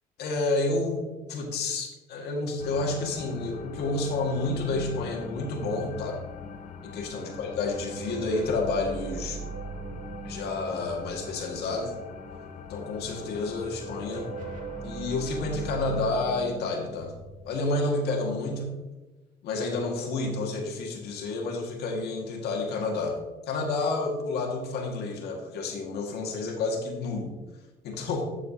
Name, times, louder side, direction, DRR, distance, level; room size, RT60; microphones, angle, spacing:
voice 1, 0.2-1.0 1.3-6.2 6.8-9.4 10.2-11.9 12.7-14.3 14.8-17.1 17.4-18.7 19.4-23.2 23.5-27.3 27.8-28.3, left 3 dB, 75° left, 0 dB, 1.8 m, -30 dB
sound 1, 2.6-16.1, left 6 dB, 50° left, 0.7 m, -43 dB
sound 2, 4.5-6.7 7.0-12.2 13.1-18.6, right 4 dB, 55° right, 2.1 m, -41 dB
9.9 x 7.1 x 2.7 m, 1.1 s
cardioid pair, 110°, 17 cm